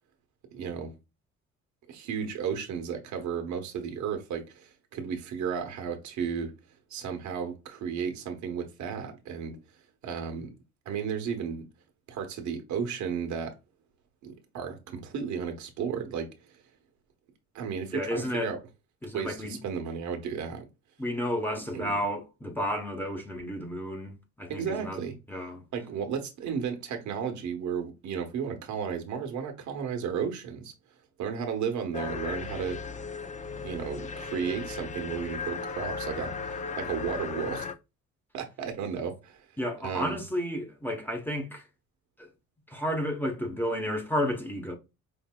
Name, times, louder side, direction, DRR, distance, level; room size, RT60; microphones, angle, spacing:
voice 1, 0.5-0.9 1.9-6.5 6.9-9.6 10.0-10.5 10.8-11.6 12.1-13.5 14.2-16.6 17.5-18.6 19.1-20.6 21.5-22.0 24.5-25.2 25.7-30.7 31.2-32.8 33.6-37.7 38.3-39.4 39.8-40.2, right 7 dB, 75° right, 1.1 m, -34 dB
voice 2, 17.9-18.5 19.0-19.6 21.0-24.1 24.4-25.0 25.3-25.6 39.6-41.6 42.2-42.3 42.7-44.7, equal, 5° left, 0.9 m, -32 dB
sound 1, 31.9-37.7, left 5 dB, 25° left, 0.4 m, -36 dB
5.3 x 2.6 x 2.2 m
cardioid pair, 120°, 29 cm